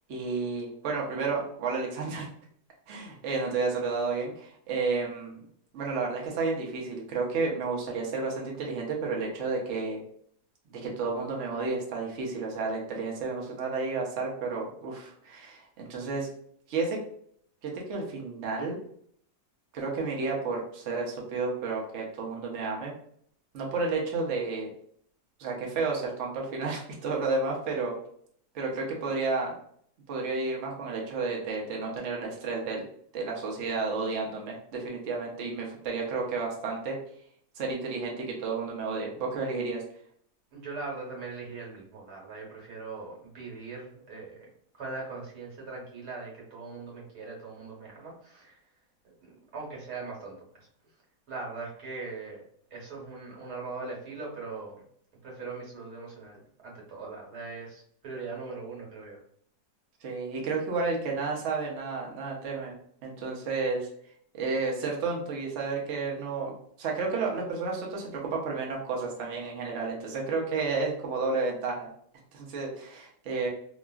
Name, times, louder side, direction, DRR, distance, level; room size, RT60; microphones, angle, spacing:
voice 1, 0.1-2.3 2.9-5.4 5.7-10.0 10.7-16.3 16.7-17.0 17.6-18.8 19.7-22.9 23.5-24.7 25.4-27.9 28.5-29.5 30.1-32.8 33.1-37.0 37.6-39.8 60.0-62.7 63.0-63.9 64.3-66.5 66.8-71.9 72.3-73.5, right 4 dB, 60° right, -1 dB, 0.8 m, -31 dB
voice 2, 40.5-44.5 44.7-48.6 49.0-50.7 51.3-52.4 52.7-54.8 55.2-59.2, right 3 dB, 75° right, -3 dB, 1.5 m, -40 dB
2.9 x 2.4 x 2.2 m, 0.62 s
omnidirectional pair, 1.7 m